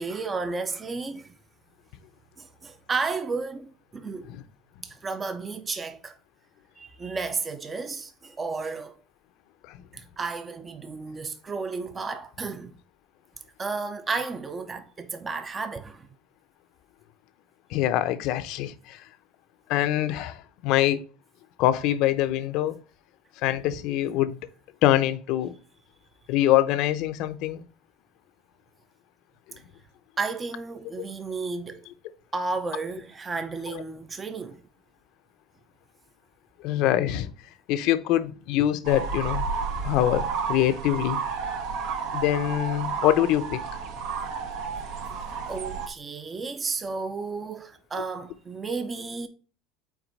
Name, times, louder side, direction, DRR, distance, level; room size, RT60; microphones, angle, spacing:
voice 1, 0.0-1.3 2.4-4.3 4.8-6.2 6.8-9.0 9.9-12.8 13.6-16.1 30.2-31.9 32.3-34.6 44.9-45.0 45.5-49.3, right 4 dB, 20° right, 0.7 m, -33 dB
voice 2, 17.7-19.0 19.7-21.0 21.6-22.7 23.4-24.4 24.8-25.5 26.3-27.6 33.7-33.8 36.6-37.3 37.7-39.4 39.8-41.2 42.1-43.6, left 13 dB, 60° left, 0.7 m, -24 dB
sound 1, 38.8-45.9, right 5 dB, 65° right, 1.4 m, -31 dB
6.0 x 4.4 x 4.1 m
supercardioid pair, 125°, 0 cm